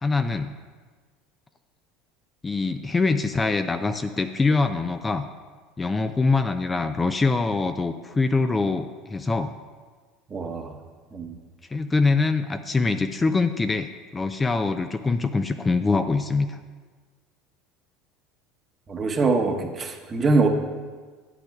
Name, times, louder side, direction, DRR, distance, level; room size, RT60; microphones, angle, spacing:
voice 1, 0.0-0.5 2.4-5.3 5.8-9.5 11.7-16.6, left 3 dB, 20° left, 8 dB, 0.4 m, -24 dB
voice 2, 10.3-10.8 11.1-11.4 18.9-20.5, right 3 dB, 30° right, 4 dB, 1.0 m, -23 dB
13.0 x 8.8 x 2.3 m, 1.5 s
hypercardioid pair, 75°, 0 cm